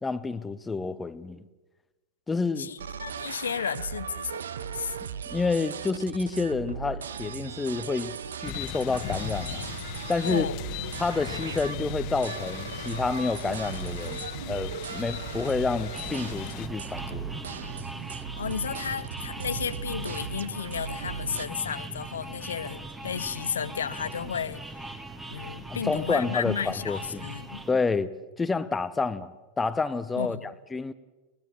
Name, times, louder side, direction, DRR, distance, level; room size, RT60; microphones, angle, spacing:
voice 1, 0.0-1.4 2.3-2.7 5.3-9.6 10.1-10.5 11.0-17.3 25.7-27.3 27.7-29.3 29.6-30.9, left 4 dB, 10° left, 0.9 m, -29 dB
voice 2, 2.6-5.0 10.2-10.6 17.0-17.1 18.4-25.0 25.3-27.6 30.2-30.5, left 7 dB, 70° left, 0.7 m, -33 dB
sound 1, 2.8-21.5, right 8 dB, 65° right, 0.8 m, -38 dB
sound 2, 8.4-16.7, left 11 dB, 45° left, 1.4 m, -38 dB
sound 3, 15.9-27.7, right 2 dB, 10° right, 1.8 m, -40 dB
23.0 x 19.5 x 7.5 m
figure-of-eight pair, 90°, 0 cm